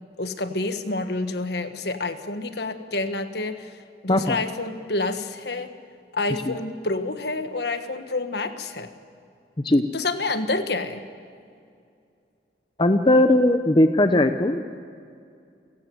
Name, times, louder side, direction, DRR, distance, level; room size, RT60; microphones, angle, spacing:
voice 1, 0.2-5.7 6.1-8.9 9.9-11.0, left 3 dB, 65° left, 8 dB, 1.5 m, -28 dB
voice 2, 12.8-14.8, left 1 dB, 25° left, 8 dB, 0.8 m, -19 dB
29.5 x 17.0 x 7.9 m, 2.4 s
head